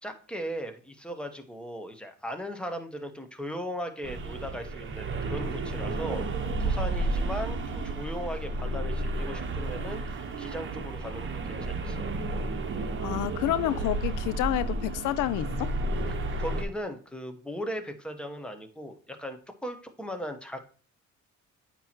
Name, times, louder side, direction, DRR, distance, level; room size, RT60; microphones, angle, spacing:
voice 1, 0.0-12.0 16.1-20.6, equal, 5° left, 1.0 m, -38 dB
sound 1, 4.0-16.6, right 2 dB, 40° right, 0.9 m, -32 dB
voice 2, 13.0-15.7, left 14 dB, 85° left, 0.5 m, -29 dB
8.9 x 3.0 x 4.4 m
cardioid pair, 90°, 30 cm